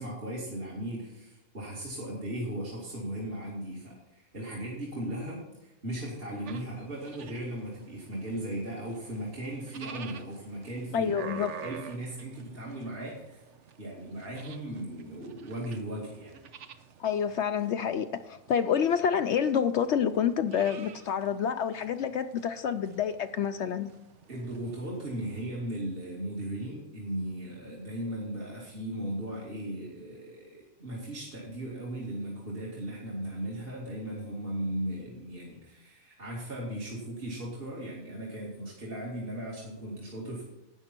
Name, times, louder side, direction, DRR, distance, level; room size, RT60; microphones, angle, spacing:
voice 1, 0.0-13.5 13.8-16.3 24.3-40.4, right 1 dB, 45° right, 2.7 m, -37 dB
sound 1, 6.5-25.4, right 7 dB, 65° right, 1.1 m, -49 dB
voice 2, 10.9-11.5 17.0-23.9, left 8 dB, 65° left, 0.8 m, -28 dB
12.5 x 9.3 x 4.4 m
omnidirectional pair, 1.4 m